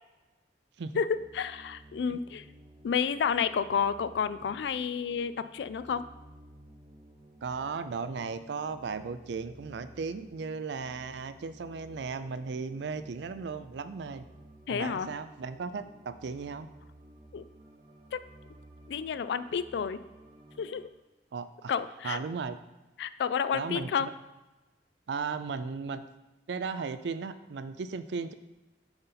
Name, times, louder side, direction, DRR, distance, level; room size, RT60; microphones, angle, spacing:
sound 1, 1.1-20.9, right 1 dB, 25° right, 0.5 m, -55 dB
voice 1, 1.3-2.4 2.8-6.0 14.7-15.1 17.3-17.4 18.1-18.2 18.9-20.0 20.6-20.9 21.7-22.2 23.0-24.1, left 7 dB, 75° left, 13 dB, 0.3 m, -30 dB
voice 2, 7.4-14.3 14.7-16.7 21.3-21.7 22.0-22.6 23.5-24.1 25.1-26.0 26.5-28.3, right 5 dB, 80° right, 12 dB, 0.4 m, -36 dB
7.8 x 4.0 x 4.0 m, 1.1 s
head